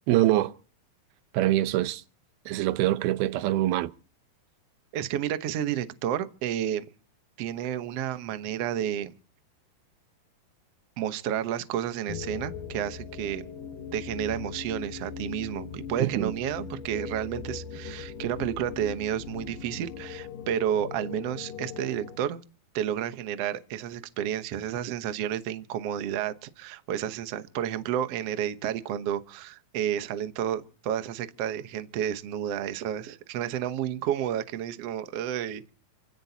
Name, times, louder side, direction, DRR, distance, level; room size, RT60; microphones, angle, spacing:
voice 1, 0.1-0.5 1.3-2.0 2.5-3.9 16.0-16.3, right 15 dB, 90° right, 2.8 m, -24 dB
voice 2, 4.9-6.8 7.4-9.1 11.0-13.4 13.9-22.4 22.7-35.7, right 10 dB, 65° right, 1.6 m, -31 dB
sound 1, 12.1-22.2, left 6 dB, 70° left, 3.0 m, -39 dB
28.5 x 16.0 x 2.9 m
omnidirectional pair, 4.2 m